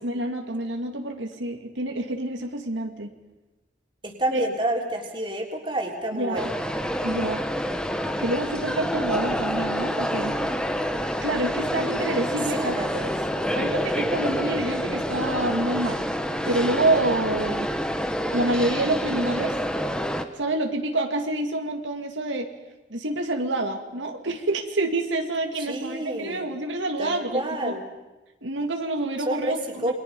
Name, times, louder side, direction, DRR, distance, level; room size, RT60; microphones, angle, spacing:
voice 1, 0.0-3.1 4.3-4.4 6.1-6.5 7.0-7.4 8.2-10.6 11.2-13.1 13.4-16.1 16.5-17.7 18.3-19.5 20.4-22.5 22.9-27.8 28.4-29.6 29.8-29.9, right 2 dB, 85° right, 3 dB, 2.3 m, -27 dB
voice 2, 4.0-6.5 12.5-12.9 25.7-26.4 27.0-27.8 29.2-29.9, right 1 dB, 25° right, 1 dB, 3.5 m, -29 dB
sound 1, 6.4-20.3, equal, 5° left, 1.2 m, -27 dB
28.5 x 23.0 x 5.5 m, 1.1 s
head